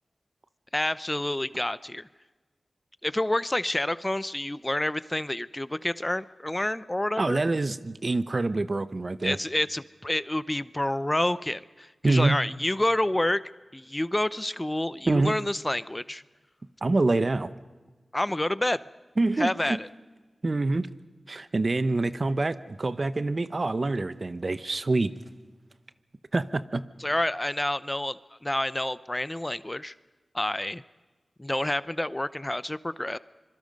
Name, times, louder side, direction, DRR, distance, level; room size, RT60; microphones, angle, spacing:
voice 1, 0.7-2.1 3.0-7.4 9.2-16.2 18.1-18.8 19.4-19.9 27.0-29.9 30.3-30.8 31.4-33.2, left 1 dB, 20° left, 17 dB, 0.6 m, -28 dB
voice 2, 7.2-9.4 12.0-12.4 15.1-15.4 16.8-17.5 19.2-19.8 20.4-20.9 21.3-25.1 26.3-26.8, right 2 dB, 50° right, 13 dB, 0.9 m, -26 dB
25.5 x 23.0 x 5.3 m, 1.3 s
cardioid pair, 55°, 0 cm